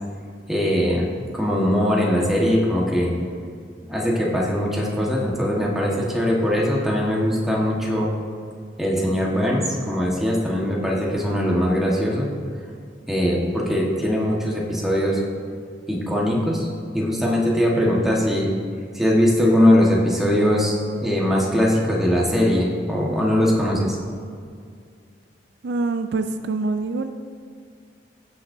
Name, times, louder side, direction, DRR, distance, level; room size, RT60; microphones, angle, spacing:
voice 1, 0.5-1.1 1.3-3.1 3.8-8.1 8.8-12.3 13.1-15.2 15.9-16.7 16.9-18.5 18.9-20.7 21.0-24.0, equal, ahead, -4 dB, 1.4 m, -21 dB
voice 2, 25.6-27.1, right 3 dB, 65° right, 8 dB, 0.4 m, -25 dB
16.5 x 6.3 x 2.7 m, 2.2 s
head